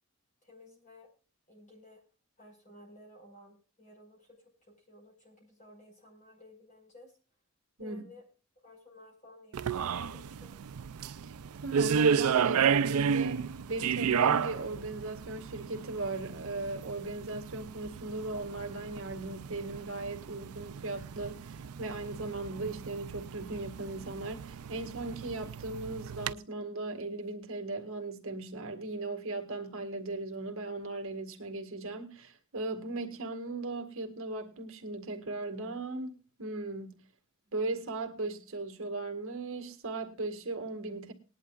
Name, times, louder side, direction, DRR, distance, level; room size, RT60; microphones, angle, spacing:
voice 1, 0.4-1.1 1.5-2.0 2.4-7.1 7.8-8.2 8.6-10.6, left 1 dB, 35° left, 5.2 m, -55 dB
sound 1, 9.5-26.3, right 7 dB, 85° right, 0.5 m, -32 dB
voice 2, 11.6-37.0 37.5-41.1, right 2 dB, 70° right, 1.9 m, -38 dB
19.5 x 11.0 x 2.4 m
head